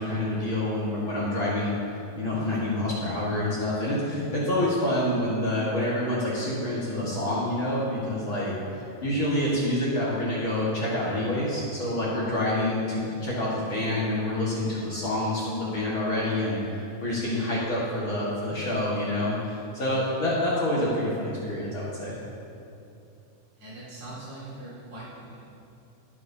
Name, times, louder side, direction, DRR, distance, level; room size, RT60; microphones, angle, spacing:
voice 1, 0.0-22.2, left 1 dB, 45° left, -7 dB, 1.8 m, -27 dB
voice 2, 23.6-25.4, right 2 dB, 45° right, -12 dB, 3.5 m, -41 dB
19.0 x 7.9 x 2.8 m, 2.7 s
omnidirectional pair, 4.3 m